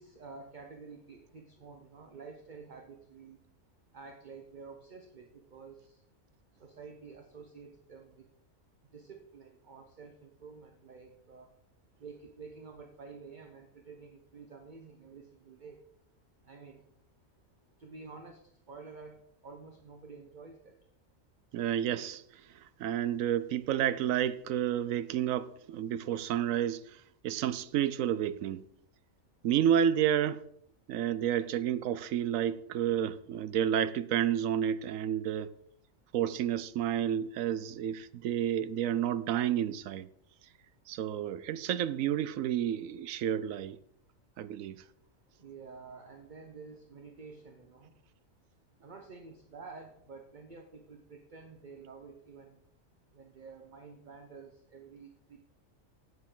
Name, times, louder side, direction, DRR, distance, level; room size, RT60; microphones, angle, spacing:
voice 1, 0.0-3.4 3.9-6.0 6.6-8.3 8.9-11.5 12.0-15.8 16.5-16.8 17.8-18.4 18.7-20.8 45.4-47.9 48.8-52.6 53.1-55.4, right 4 dB, 40° right, 1.0 m, -50 dB
voice 2, 21.5-22.4 22.8-28.6 29.4-30.5 30.9-35.5 36.1-40.1 40.9-43.8 44.4-44.8, right 10 dB, 80° right, 1.0 m, -30 dB
10.5 x 9.4 x 3.8 m
omnidirectional pair, 1.4 m